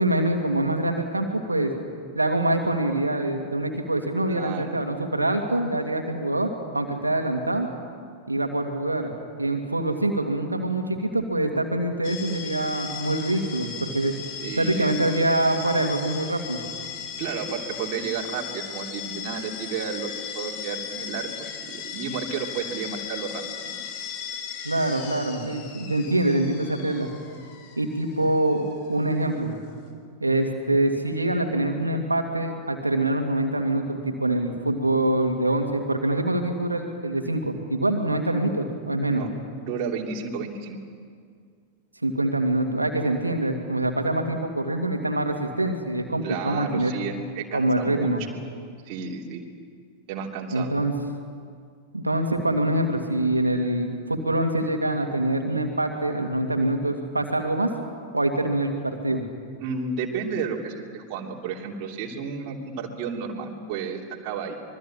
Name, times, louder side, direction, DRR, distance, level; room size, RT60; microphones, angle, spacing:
voice 1, 0.0-1.7 2.1-7.7 8.3-14.2 14.6-16.6 24.6-27.1 27.8-28.6 28.9-29.6 30.2-39.2 42.0-46.9 47.5-48.2 50.5-50.9 51.9-57.7 58.1-59.2, right 1 dB, 85° right, 4 dB, 2.5 m, -25 dB
voice 2, 4.3-4.8 14.4-14.9 17.2-23.8 39.1-39.3 39.6-40.8 46.2-48.4 48.8-49.4 50.1-50.7 59.6-64.6, right 5 dB, 45° right, -1 dB, 3.1 m, -32 dB
sound 1, 12.0-29.9, left 7 dB, 45° left, 4.6 m, -37 dB
26.0 x 22.5 x 8.8 m, 2.1 s
figure-of-eight pair, 90°, 0 cm